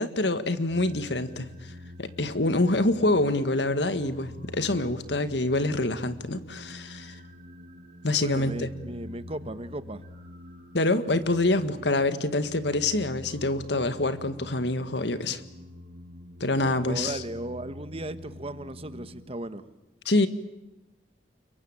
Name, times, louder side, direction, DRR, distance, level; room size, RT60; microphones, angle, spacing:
voice 1, 0.0-1.7 2.0-7.2 8.0-8.7 10.7-15.4 16.4-17.2 20.1-20.3, left 2 dB, 75° left, 11 dB, 1.8 m, -26 dB
sound 1, 0.7-19.3, left 1 dB, 50° right, 6.7 m, -46 dB
voice 2, 8.2-10.0 16.9-19.6, right 1 dB, 35° right, 12 dB, 1.3 m, -36 dB
29.0 x 23.0 x 8.8 m, 0.97 s
head